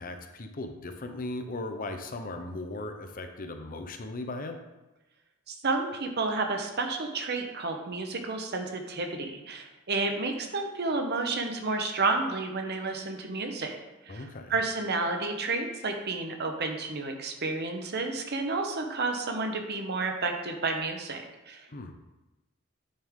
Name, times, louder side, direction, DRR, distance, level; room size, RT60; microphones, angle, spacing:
voice 1, 0.0-4.6 14.1-14.5 21.7-21.9, left 2 dB, 40° left, 6 dB, 0.7 m, -37 dB
voice 2, 5.5-13.8 14.0-21.7, right 3 dB, 50° right, 4 dB, 0.9 m, -31 dB
8.9 x 5.4 x 3.6 m, 1.1 s
head